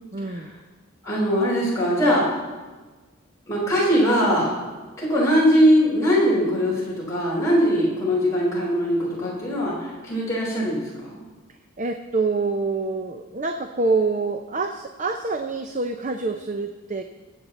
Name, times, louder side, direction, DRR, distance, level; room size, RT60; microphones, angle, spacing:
voice 1, 0.1-0.5 11.8-17.0, right 3 dB, 35° right, 5 dB, 0.6 m, -26 dB
voice 2, 1.0-2.2 3.5-4.5 5.0-10.8, equal, 15° left, -7 dB, 4.7 m, -21 dB
23.0 x 8.4 x 4.2 m, 1.3 s
head